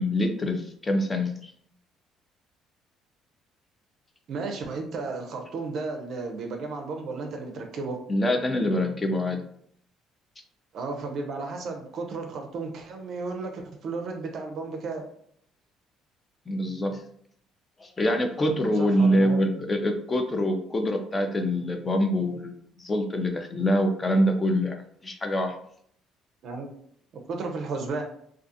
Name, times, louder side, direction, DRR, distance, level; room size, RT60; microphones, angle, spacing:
voice 1, 0.0-1.5 8.1-9.4 16.5-17.0 17.8-22.5 22.8-24.8 25.0-25.6, equal, 20° left, 5 dB, 0.5 m, -25 dB
voice 2, 4.3-8.0 10.7-15.0 18.8-19.4 26.4-26.7 27.3-28.0, right 3 dB, 60° right, 3 dB, 0.4 m, -33 dB
2.4 x 2.3 x 2.6 m, 0.66 s
cardioid pair, 100°, 0 cm